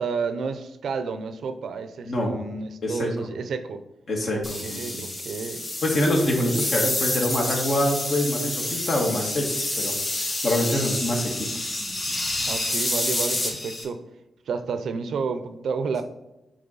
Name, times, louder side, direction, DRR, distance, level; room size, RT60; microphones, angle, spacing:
voice 1, 0.0-3.8 4.3-5.6 12.5-14.0 14.5-16.0, right 5 dB, 80° right, 9 dB, 0.6 m, -31 dB
voice 2, 4.1-5.1 5.8-11.7, left 1 dB, 65° left, -1 dB, 1.8 m, -25 dB
sound 1, 4.4-13.8, left 1 dB, 30° left, 2.1 m, -28 dB
8.0 x 3.1 x 4.0 m, 0.96 s
cardioid pair, 75°, 0 cm